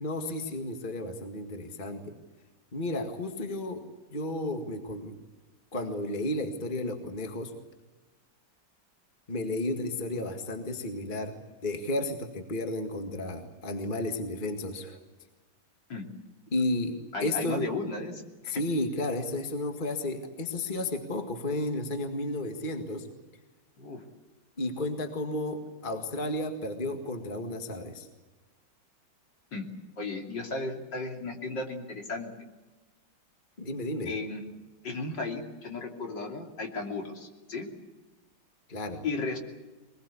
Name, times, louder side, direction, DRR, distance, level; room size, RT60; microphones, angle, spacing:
voice 1, 0.0-2.1 2.7-5.2 5.7-7.5 9.3-15.0 16.5-17.6 18.5-23.1 24.6-28.1 33.6-34.1 38.7-39.0, left 1 dB, 25° left, 5 dB, 2.0 m, -33 dB
voice 2, 17.1-18.6 23.8-24.0 29.5-29.7 30.0-32.3 34.1-34.4 34.8-37.7 39.0-39.4, left 3 dB, 60° left, 2 dB, 3.5 m, -35 dB
23.5 x 21.0 x 8.4 m, 1.2 s
omnidirectional pair, 2.2 m